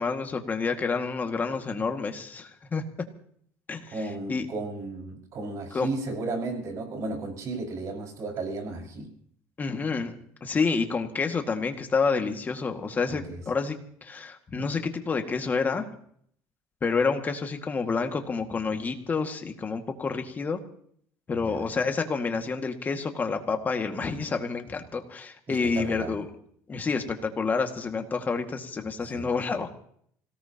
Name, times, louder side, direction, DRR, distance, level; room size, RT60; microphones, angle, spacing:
voice 1, 0.0-2.8 3.7-4.5 5.7-5.9 9.6-10.1 10.4-13.8 14.0-15.9 16.8-20.6 21.3-26.3 26.7-29.7, left 4 dB, 25° left, 5 dB, 2.0 m, -29 dB
voice 2, 3.9-9.1 13.1-13.4 21.3-21.6 25.5-26.1 29.1-29.3, right 3 dB, 50° right, 1 dB, 5.7 m, -34 dB
25.5 x 18.0 x 3.0 m, 0.63 s
cardioid pair, 135°, 7 cm